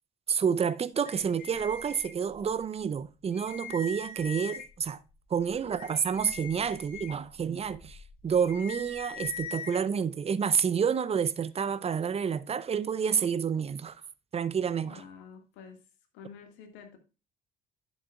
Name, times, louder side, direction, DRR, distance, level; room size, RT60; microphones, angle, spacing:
voice 1, 0.3-5.0 5.3-14.0 14.3-15.0, right 7 dB, 30° right, 0.6 m, -29 dB
sound 1, 1.0-2.6 3.0-3.1 3.3-4.9 5.4-9.8, left 5 dB, 45° left, 2.3 m, -43 dB
voice 2, 14.8-15.8 16.1-17.0, left 6 dB, 65° left, 2.0 m, -49 dB
11.0 x 7.3 x 2.4 m
hypercardioid pair, 55°, 20 cm